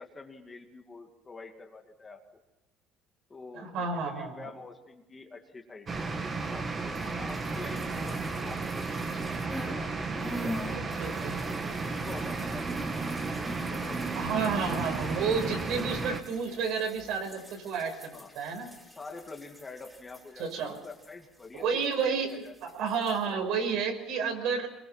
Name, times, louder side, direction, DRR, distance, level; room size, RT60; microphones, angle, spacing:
voice 1, 0.0-2.2 3.3-9.0 9.6-12.8 13.3-14.2 18.1-18.3 19.0-22.5, left 3 dB, 20° left, 4 dB, 2.1 m, -47 dB
voice 2, 3.5-4.5 10.7-11.4 14.2-18.7 20.4-20.8 21.5-22.4 22.6-24.7, right 5 dB, 65° right, 5 dB, 5.4 m, -31 dB
sound 1, 5.9-16.2, right 4 dB, 25° right, 2.0 m, -34 dB
sound 2, 7.0-9.8 10.1-22.0 22.3-23.2, right 1 dB, 5° right, 3.6 m, -43 dB
22.5 x 22.0 x 5.7 m, 1.0 s
cardioid pair, 140°, 0 cm